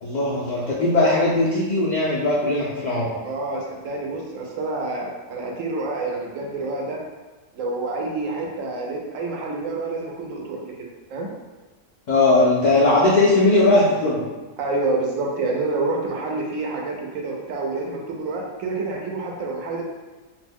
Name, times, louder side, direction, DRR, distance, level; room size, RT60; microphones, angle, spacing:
voice 1, 0.0-3.2 12.1-14.2, left 2 dB, 75° left, -6 dB, 0.4 m, -19 dB
voice 2, 3.2-7.0 7.6-11.3 14.6-19.8, right 3 dB, 85° right, -1 dB, 1.0 m, -28 dB
2.5 x 2.0 x 3.4 m, 1.2 s
omnidirectional pair, 1.3 m